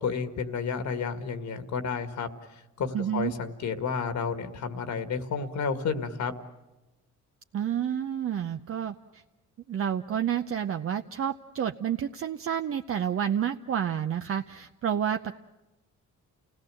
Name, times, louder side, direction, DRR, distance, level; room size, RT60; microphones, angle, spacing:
voice 1, 0.0-2.3 2.8-6.3, left 5 dB, 65° left, 9 dB, 2.0 m, -31 dB
voice 2, 2.9-3.3 7.5-9.2 9.7-15.4, right 9 dB, 45° right, 6 dB, 0.7 m, -29 dB
29.0 x 17.5 x 7.7 m, 1.1 s
cardioid pair, 90°, 30 cm